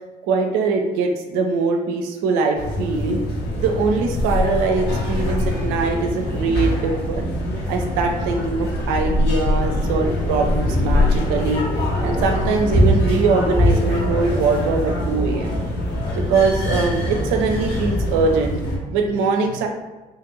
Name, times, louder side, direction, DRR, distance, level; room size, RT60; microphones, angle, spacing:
voice 1, 0.3-3.2 3.6-7.3 7.7-11.7 12.0-15.6 16.3-18.6 18.9-19.7, right 4 dB, 70° right, 3 dB, 0.4 m, -22 dB
sound 1, 2.6-18.8, left 1 dB, 55° left, 0.8 m, -22 dB
2.5 x 2.5 x 2.9 m, 1.2 s
hypercardioid pair, 45°, 20 cm